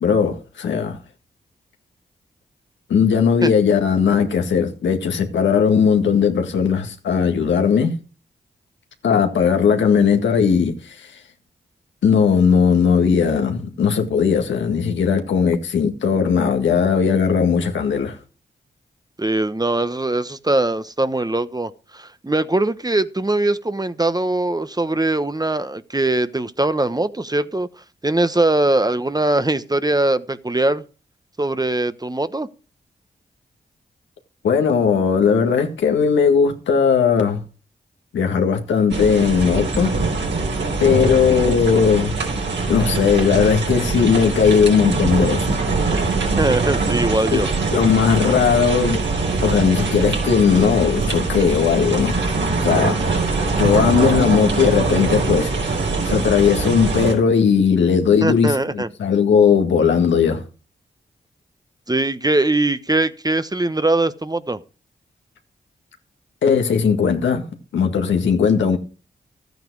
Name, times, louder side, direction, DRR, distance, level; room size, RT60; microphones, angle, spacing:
voice 1, 0.0-1.0 2.9-8.0 9.0-11.1 12.0-18.2 34.4-37.4 38.1-39.9 40.8-42.1 42.7-45.5 47.3-49.0 49.4-52.2 52.6-53.0 53.6-55.5 56.0-60.4 66.4-67.5 67.7-68.8, left 6 dB, 85° left, 1.9 m, -18 dB
voice 2, 19.2-27.7 28.0-30.8 31.4-32.5 46.4-47.5 58.2-58.9 61.9-64.6, right 2 dB, 20° right, 1.1 m, -21 dB
sound 1, 38.9-57.1, right 3 dB, 80° right, 5.0 m, -22 dB
13.5 x 9.3 x 4.8 m
supercardioid pair, 40°, 19 cm